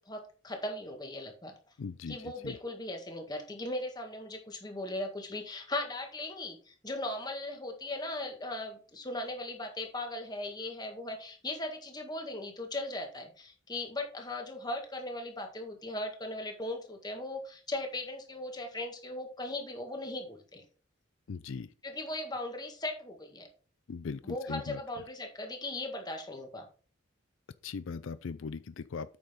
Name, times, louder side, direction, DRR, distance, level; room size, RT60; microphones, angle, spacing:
voice 1, 0.1-1.5 2.1-20.6 21.8-23.5 24.2-26.7, left 2 dB, 20° left, 1.7 m, -38 dB
voice 2, 1.8-2.5 21.3-21.7 23.9-24.8 27.6-29.2, left 5 dB, 80° left, 0.4 m, -39 dB
8.7 x 6.6 x 3.7 m
head